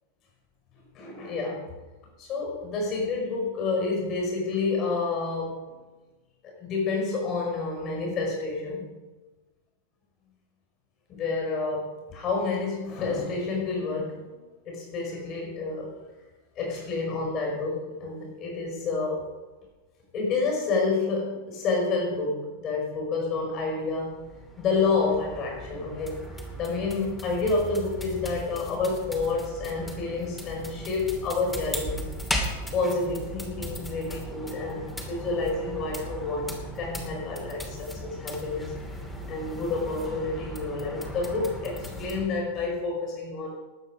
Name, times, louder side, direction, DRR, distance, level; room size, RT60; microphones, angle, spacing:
voice 1, 1.0-1.6 2.2-5.6 6.6-8.9 11.1-14.4 14.7-15.9 16.6-19.2 20.1-24.2 24.6-26.2 26.6-32.1 32.5-39.0 39.3-43.6, left 3 dB, 35° left, 0 dB, 5.3 m, -29 dB
sound 1, 23.8-42.3, equal, 10° left, 2.7 m, -37 dB
20.5 x 8.5 x 5.1 m, 1.2 s
figure-of-eight pair, 90°, 0 cm